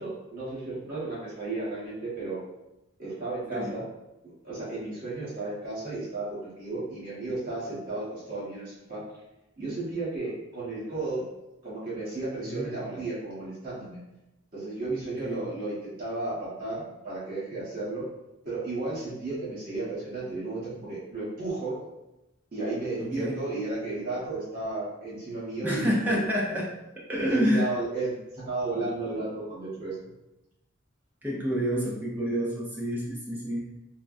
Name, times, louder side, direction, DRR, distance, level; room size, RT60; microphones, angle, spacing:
voice 1, 0.0-2.4 3.0-3.9 4.4-9.0 9.6-11.2 11.6-14.0 14.5-18.0 18.4-21.8 22.5-26.2 27.3-30.1, right 2 dB, 45° right, -9 dB, 1.2 m, -33 dB
voice 2, 23.0-23.4 25.6-26.7 27.0-27.7 31.2-33.6, equal, 10° right, -4 dB, 0.4 m, -28 dB
3.3 x 2.1 x 2.5 m, 0.94 s
head